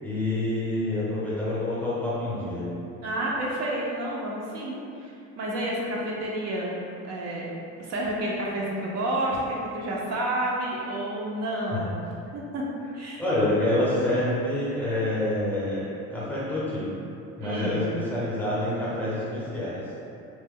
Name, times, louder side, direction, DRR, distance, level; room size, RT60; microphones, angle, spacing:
voice 1, 0.0-2.7 11.7-11.8 13.2-16.9 17.4-19.8, left 1 dB, 5° left, -9 dB, 0.6 m, -27 dB
voice 2, 3.0-7.5 7.8-12.0 12.3-12.7 12.9-13.2 17.4-17.8, right 1 dB, 60° right, -3 dB, 0.5 m, -30 dB
3.1 x 2.1 x 3.5 m, 2.6 s
cardioid pair, 165°, 30 cm